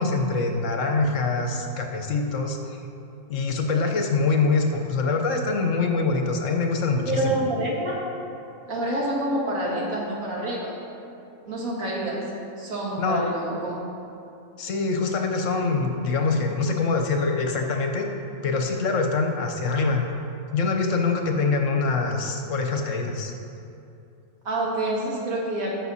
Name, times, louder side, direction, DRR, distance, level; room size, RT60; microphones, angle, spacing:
voice 1, 0.0-2.8 3.3-7.4 13.0-13.2 14.6-18.1 18.4-20.1 20.5-23.3, left 4 dB, 65° left, 3 dB, 1.2 m, -24 dB
voice 2, 7.1-8.0 8.7-10.8 11.5-12.3 12.6-13.8 24.4-25.7, right 1 dB, 85° right, -3 dB, 2.2 m, -27 dB
14.0 x 6.2 x 4.2 m, 2.7 s
omnidirectional pair, 1.4 m